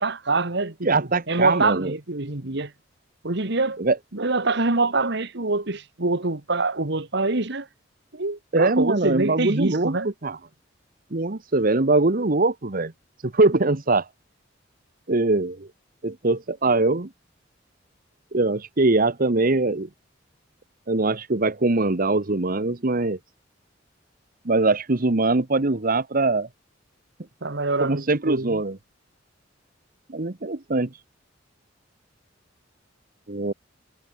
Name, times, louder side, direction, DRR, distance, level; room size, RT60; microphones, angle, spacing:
voice 1, 0.0-0.9 1.3-2.7 3.2-3.8 4.1-7.7 8.1-10.1 27.4-28.6, right 3 dB, 65° right, 1.9 m, -25 dB
voice 2, 0.8-1.9 3.8-4.0 8.5-10.0 10.2-10.4 11.1-12.9 13.2-14.1 15.1-15.7 16.0-17.1 18.3-19.9 20.9-23.2 24.4-26.5 27.8-28.8 30.1-30.9 33.3-33.5, right 3 dB, 50° right, 1.2 m, -22 dB
head